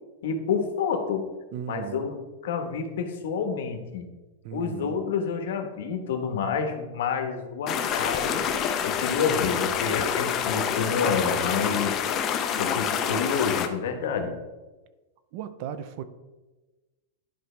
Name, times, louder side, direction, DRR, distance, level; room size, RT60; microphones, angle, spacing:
voice 1, 0.2-1.3 1.7-4.0 4.5-8.4 8.8-12.0 12.6-14.3, left 6 dB, 75° left, 1.2 m, -29 dB
voice 2, 1.5-2.1 4.4-5.0 15.3-16.0, right 9 dB, 45° right, 0.5 m, -36 dB
sound 1, 7.7-13.7, left 8 dB, 30° left, 0.6 m, -27 dB
11.0 x 5.2 x 3.3 m
supercardioid pair, 155°, 0 cm